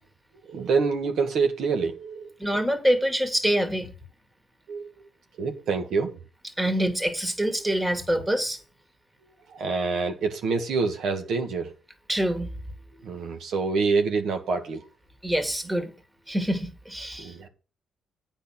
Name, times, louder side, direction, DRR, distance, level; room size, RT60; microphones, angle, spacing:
voice 1, 0.4-2.3 4.7-4.8 5.4-6.2 9.5-11.7 13.0-14.8 17.2-17.5, right 4 dB, 70° right, 1.4 m, -26 dB
voice 2, 2.4-3.9 6.6-8.6 12.1-12.5 15.2-15.9 16.3-17.3, equal, 15° right, 2.1 m, -25 dB
8.7 x 6.2 x 5.9 m
cardioid pair, 90°, 0 cm